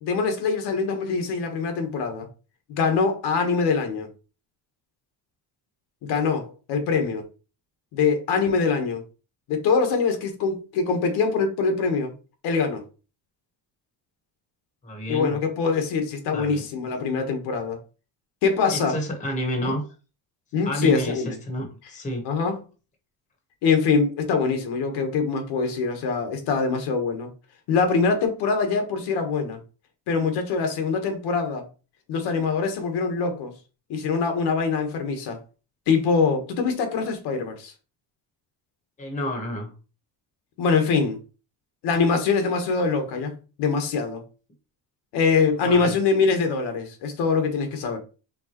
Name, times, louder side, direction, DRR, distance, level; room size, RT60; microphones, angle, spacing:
voice 1, 0.0-2.3 2.7-4.1 6.0-7.3 7.9-9.0 9.5-12.1 12.4-12.8 15.1-17.8 18.4-19.0 19.6-19.7 20.5-21.4 22.2-22.6 23.6-27.3 27.7-29.6 30.1-31.6 32.1-33.5 33.9-35.4 35.9-37.7 40.6-41.2 41.8-44.2 45.1-48.0, left 5 dB, 80° left, 1.2 m, -23 dB
voice 2, 14.8-15.3 16.3-16.6 18.7-19.8 20.6-21.1 21.5-22.2 39.0-39.7 45.6-45.9, equal, 20° left, 1.0 m, -29 dB
4.5 x 3.6 x 2.9 m
cardioid pair, 175°, 39 cm